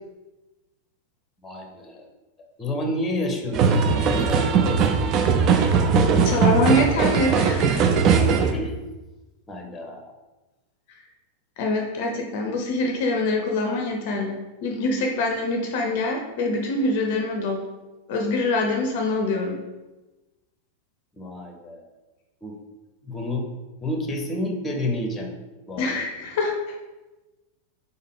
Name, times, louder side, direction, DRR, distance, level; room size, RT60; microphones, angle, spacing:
voice 1, 1.4-2.1 2.6-5.1 8.5-8.7 9.5-10.1 21.2-21.9 22.4-22.6 23.0-23.5 23.8-25.3 25.7-26.0, left 1 dB, 20° left, 3 dB, 0.8 m, -30 dB
sound 1, 3.5-8.5, right 5 dB, 35° right, 0.4 m, -19 dB
voice 2, 6.2-7.8 11.6-17.6 18.1-19.6 25.8-26.5, left 2 dB, 50° left, 2 dB, 0.5 m, -24 dB
3.9 x 3.6 x 3.6 m, 1.1 s
figure-of-eight pair, 90°, 0 cm